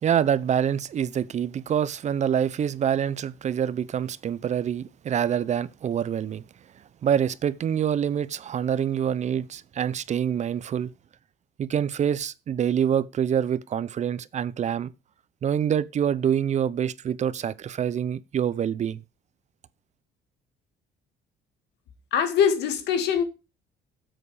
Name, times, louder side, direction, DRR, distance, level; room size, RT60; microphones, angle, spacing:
voice 1, 0.0-6.4 7.0-10.9 11.6-14.9 15.4-19.0, right 9 dB, 45° right, 0.7 m, -26 dB
voice 2, 22.1-23.2, left 7 dB, 80° left, 2.1 m, -22 dB
9.4 x 7.9 x 5.0 m
cardioid pair, 110°, 17 cm